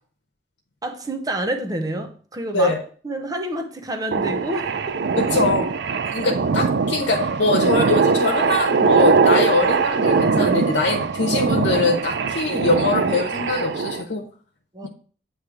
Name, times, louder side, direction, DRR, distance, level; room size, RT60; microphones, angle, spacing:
voice 1, 0.8-2.7 3.0-5.0 14.7-14.9, right 1 dB, 20° right, 0.7 m, -28 dB
sound 1, 4.1-14.0, right 4 dB, 65° right, 0.4 m, -21 dB
voice 2, 5.2-5.7 6.1-14.2 14.8-14.9, left 2 dB, 85° left, 1.0 m, -22 dB
8.3 x 3.1 x 4.7 m
head